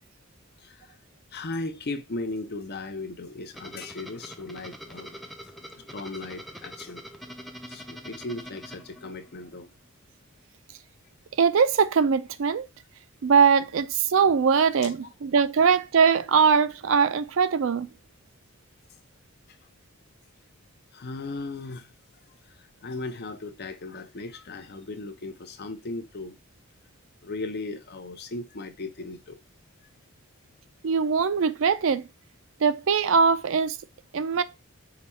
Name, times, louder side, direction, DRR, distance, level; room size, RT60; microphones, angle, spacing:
voice 1, 0.6-0.9 1.3-5.2 5.8-7.0 7.7-9.7 14.8-14.9 20.9-21.9 22.6-26.4 27.2-29.4, left 2 dB, 50° left, 0.6 m, -37 dB
sound 1, 3.5-9.6, equal, ahead, 0.5 m, -44 dB
voice 2, 11.4-12.7 13.2-17.9 30.8-32.1 32.6-33.8 34.1-34.4, right 6 dB, 65° right, 0.4 m, -21 dB
4.9 x 2.3 x 4.1 m
head